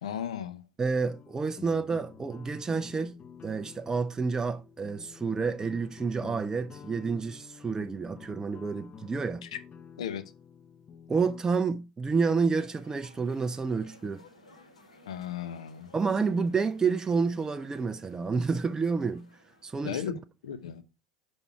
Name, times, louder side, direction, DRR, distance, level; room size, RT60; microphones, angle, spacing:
voice 1, 0.0-0.6 9.4-9.5 10.0-10.2 15.1-15.9 19.8-20.8, left 9 dB, 70° left, 0.7 m, -36 dB
voice 2, 0.8-9.5 11.1-14.2 15.9-20.2, right 5 dB, 20° right, 0.4 m, -29 dB
sound 1, 0.9-11.4, left 7 dB, 30° left, 0.8 m, -50 dB
sound 2, 12.4-19.7, left 2 dB, 85° left, 1.4 m, -57 dB
5.9 x 5.3 x 4.6 m
figure-of-eight pair, 70°, 4 cm